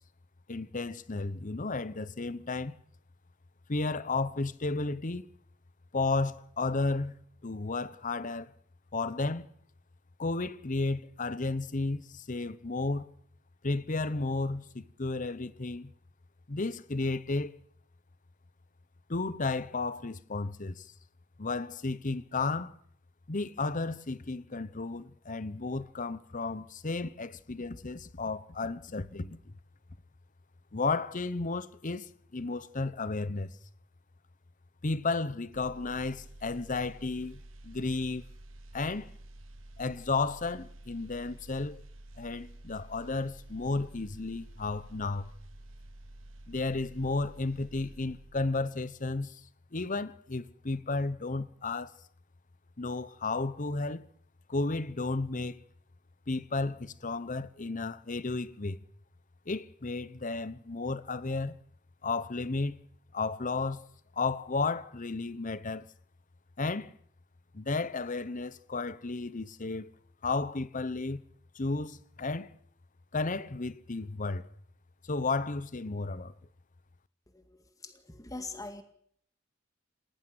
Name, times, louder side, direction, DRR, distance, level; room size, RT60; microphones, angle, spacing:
voice 1, 0.5-2.8 3.7-5.3 5.9-7.1 7.4-8.5 8.9-9.5 10.2-13.1 13.6-15.9 16.5-17.6 19.1-20.9 21.4-22.7 23.3-29.5 30.7-33.5 34.8-38.3 38.7-39.1 39.8-41.8 42.2-45.3 46.5-49.4 49.7-52.0 52.8-54.1 54.5-55.6 56.3-58.8 59.5-61.6 62.0-62.8 63.1-63.9 64.2-65.9 66.6-66.9 67.5-69.9 70.2-71.2 71.5-72.6 73.1-74.5 75.0-76.3, left 3 dB, 40° left, 0.9 m, -33 dB
sound 1, 35.5-48.6 49.0-49.2, right 1 dB, 75° right, 1.3 m, -50 dB
voice 2, 77.3-78.8, left 2 dB, 15° left, 2.0 m, -43 dB
18.5 x 18.5 x 7.8 m
head